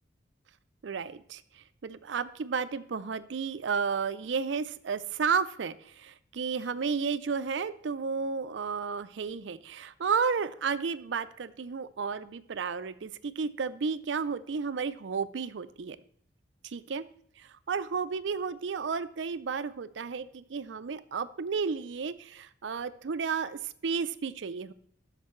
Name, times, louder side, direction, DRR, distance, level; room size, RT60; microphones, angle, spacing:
voice 1, 0.8-16.0 16.6-17.0 17.4-24.7, right 5 dB, 80° right, 13 dB, 0.5 m, -32 dB
14.0 x 6.6 x 3.1 m, 0.62 s
head